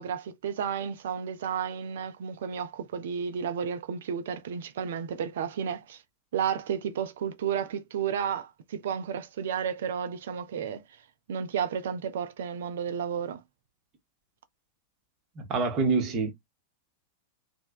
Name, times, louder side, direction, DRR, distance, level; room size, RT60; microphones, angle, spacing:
voice 1, 0.0-6.0 6.3-10.8 11.3-13.4, right 8 dB, 60° right, 0.5 m, -32 dB
voice 2, 15.4-16.3, right 4 dB, 35° right, 0.9 m, -26 dB
3.2 x 2.1 x 2.2 m
figure-of-eight pair, 90°, 0 cm